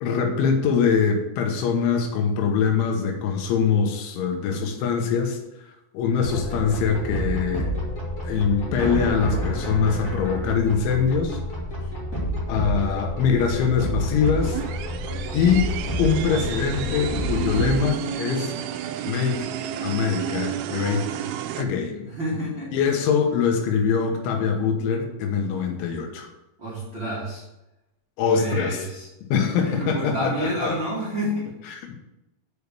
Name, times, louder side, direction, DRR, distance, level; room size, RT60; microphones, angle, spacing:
voice 1, 0.0-5.4 5.9-7.7 8.2-11.4 12.5-14.6 15.3-15.7 16.0-18.5 19.0-19.5 19.8-21.1 21.6-22.1 22.7-26.3 28.2-28.8 29.3-30.7 31.7-32.0, left 6 dB, 75° left, 3 dB, 3.4 m, -23 dB
sound 1, 6.2-17.7, equal, 30° left, 1.8 m, -29 dB
sound 2, 14.3-21.7, right 10 dB, 80° right, 2.9 m, -31 dB
voice 2, 22.0-22.7 26.6-27.4 28.2-29.1 29.6-31.5, right 1 dB, 45° right, -7 dB, 1.6 m, -29 dB
6.8 x 6.6 x 6.8 m, 0.95 s
omnidirectional pair, 5.8 m